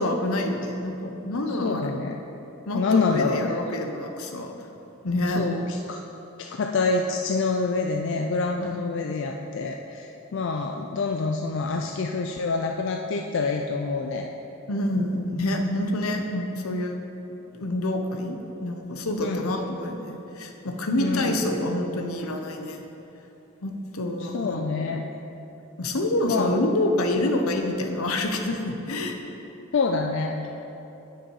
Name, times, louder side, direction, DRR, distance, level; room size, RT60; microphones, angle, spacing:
voice 1, 0.0-1.9 2.7-4.5 5.0-5.4 8.6-8.8 14.7-17.0 17.5-22.8 23.6-24.7 25.8-29.2, left 1 dB, 80° left, 4 dB, 0.8 m, -27 dB
voice 2, 1.5-2.2 2.7-3.6 5.4-6.0 6.4-14.3 19.2-19.5 21.0-21.5 24.2-25.1 26.3-26.6 29.7-30.4, left 4 dB, 55° left, 3 dB, 0.4 m, -27 dB
9.7 x 6.0 x 4.7 m, 3.0 s
head